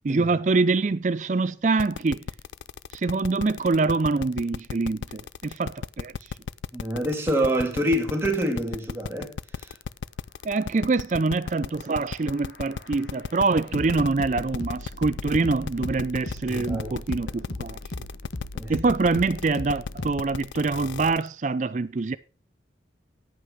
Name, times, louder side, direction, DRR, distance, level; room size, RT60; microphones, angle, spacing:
voice 1, 0.0-2.2 2.9-6.1 10.4-17.8 18.7-22.2, right 3 dB, 40° right, 0.4 m, -25 dB
sound 1, 1.8-21.3, left 5 dB, 85° left, 0.4 m, -34 dB
voice 2, 6.7-9.8 16.5-17.0 17.5-17.6 18.5-18.7, right 1 dB, 15° right, 2.0 m, -27 dB
sound 2, 11.7-20.4, left 1 dB, 65° left, 1.6 m, -38 dB
10.0 x 8.5 x 5.0 m
head